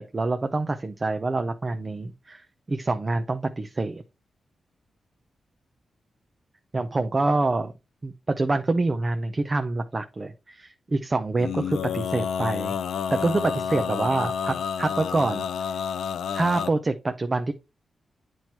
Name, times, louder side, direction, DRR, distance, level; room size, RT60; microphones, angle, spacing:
voice 1, 0.0-4.0 6.7-7.7 8.0-12.8 13.1-15.7 16.3-17.5, right 2 dB, 25° right, 0.5 m, -26 dB
Male singing, 11.4-16.7, left 7 dB, 90° left, 0.5 m, -29 dB
9.0 x 4.6 x 2.8 m
wide cardioid pair, 140°, 0 cm